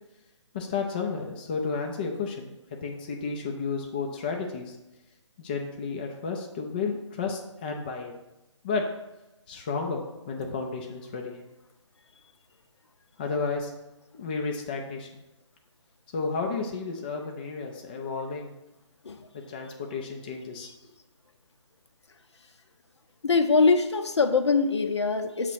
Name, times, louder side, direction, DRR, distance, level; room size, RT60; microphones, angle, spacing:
voice 1, 0.5-4.7 5.4-8.2 8.6-8.9 9.5-11.4 13.2-13.7 14.1-15.1 16.1-18.5 19.3-20.7, left 4 dB, 20° left, 1 dB, 0.4 m, -32 dB
voice 2, 23.2-25.5, left 4 dB, 60° left, 7 dB, 0.7 m, -23 dB
6.5 x 3.1 x 5.6 m, 1.0 s
figure-of-eight pair, 150°, 16 cm